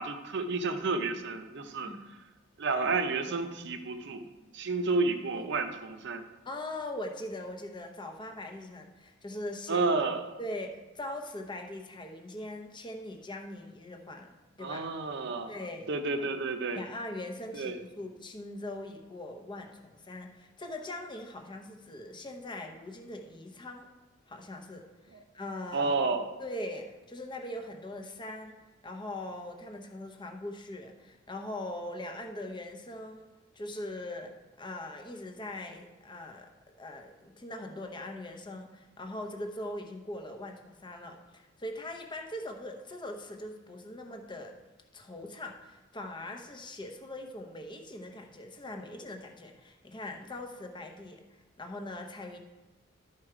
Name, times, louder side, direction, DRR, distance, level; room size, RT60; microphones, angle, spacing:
voice 1, 0.0-1.9 2.6-4.3 4.5-6.2 9.7-10.2 14.6-15.6 15.9-16.8 17.5-17.8 25.7-26.3, right 3 dB, 60° right, 7 dB, 0.7 m, -30 dB
voice 2, 6.5-9.9 10.4-14.9 15.5-15.9 16.8-23.9 24.3-25.9 26.4-28.6 28.8-33.3 33.5-36.5 36.8-44.6 44.9-52.4, left 1 dB, 25° left, 3 dB, 0.8 m, -41 dB
12.0 x 4.5 x 4.9 m, 1.1 s
head